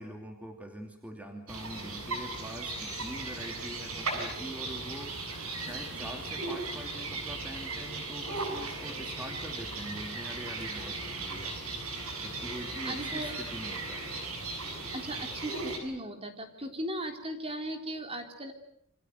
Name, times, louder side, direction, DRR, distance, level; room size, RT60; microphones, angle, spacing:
voice 1, 0.0-11.5 12.2-14.2, equal, 5° right, 3 dB, 2.7 m, -44 dB
sound 1, 1.5-15.8, right 3 dB, 75° right, 7.6 m, -37 dB
voice 2, 12.8-13.3 14.9-18.5, right 1 dB, 25° right, 5 dB, 3.7 m, -37 dB
28.0 x 26.0 x 8.0 m, 0.70 s
head